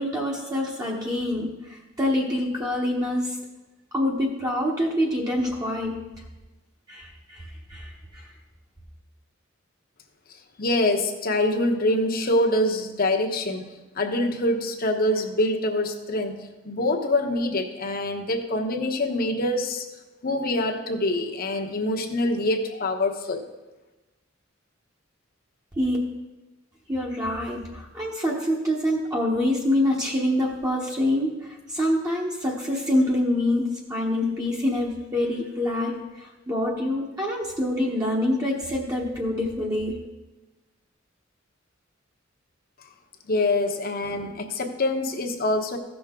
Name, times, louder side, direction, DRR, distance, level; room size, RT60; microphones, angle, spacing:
voice 1, 0.0-3.4 3.9-6.2 6.9-8.3 25.8-26.0 26.9-40.0, left 1 dB, 20° right, -4 dB, 1.1 m, -26 dB
voice 2, 10.6-19.8 20.2-23.4 43.3-45.8, left 1 dB, 45° left, 3 dB, 1.1 m, -25 dB
15.5 x 6.2 x 3.7 m, 1.1 s
head